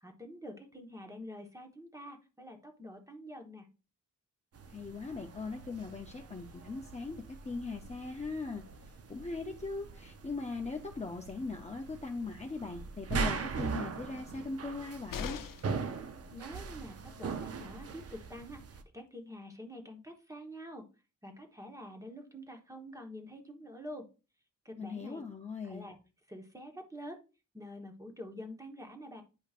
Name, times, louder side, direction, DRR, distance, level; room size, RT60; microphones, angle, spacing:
voice 1, 0.0-3.7 16.3-18.6 18.9-20.9 21.2-24.0 24.6-25.2 25.6-26.0 26.3-27.2 27.5-29.2, equal, 10° right, 3 dB, 1.1 m, -47 dB
sound 1, 4.5-18.8, right 5 dB, 50° right, 0.6 m, -41 dB
voice 2, 4.7-15.4 24.8-25.9, left 4 dB, 20° left, 2 dB, 0.6 m, -40 dB
sound 2, 15.1-15.8 17.8-17.9 18.2-18.3, left 6 dB, 85° left, 0.6 m, -40 dB
10.0 x 5.0 x 2.4 m, 0.32 s
wide cardioid pair, 170°, 32 cm